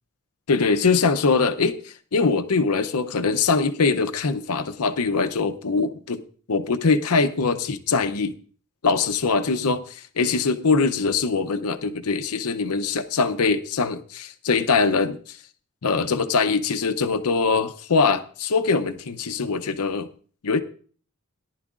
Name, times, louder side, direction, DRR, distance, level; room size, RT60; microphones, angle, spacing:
voice 1, 0.5-1.8 2.1-6.2 6.5-8.4 8.8-15.4 15.8-20.1 20.4-20.6, left 4 dB, 85° left, 8 dB, 0.7 m, -22 dB
18.0 x 11.0 x 2.5 m, 0.43 s
head